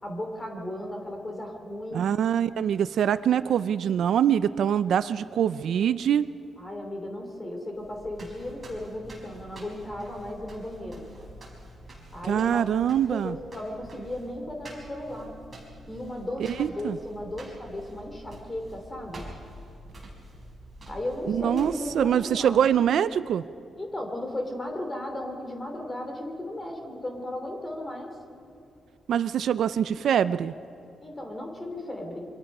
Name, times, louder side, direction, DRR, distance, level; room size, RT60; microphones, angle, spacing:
voice 1, 0.0-2.0 6.6-11.0 12.1-12.6 13.1-15.3 15.9-19.2 20.9-22.6 23.8-28.1 31.0-32.3, left 1 dB, 15° left, 3 dB, 2.9 m, -35 dB
voice 2, 1.9-6.3 12.2-13.4 16.6-17.0 21.3-23.4 29.1-30.5, right 9 dB, 65° right, 14 dB, 0.4 m, -24 dB
sound 1, 7.7-22.8, right 1 dB, 20° right, 5.0 m, -47 dB
27.5 x 24.5 x 5.4 m, 2.5 s
wide cardioid pair, 180°, 0 cm